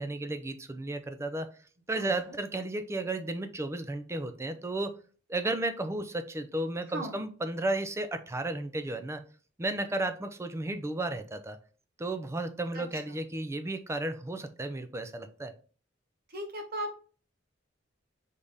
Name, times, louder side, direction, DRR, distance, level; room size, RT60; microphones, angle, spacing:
voice 1, 0.0-1.5 1.9-4.9 5.3-9.2 9.6-11.6 12.0-15.5, right 2 dB, 15° right, 9 dB, 0.4 m, -33 dB
voice 2, 2.0-2.4 6.9-7.2 12.7-12.8 16.3-17.0, right 1 dB, 50° right, 4 dB, 0.8 m, -37 dB
3.6 x 3.4 x 4.0 m, 0.39 s
head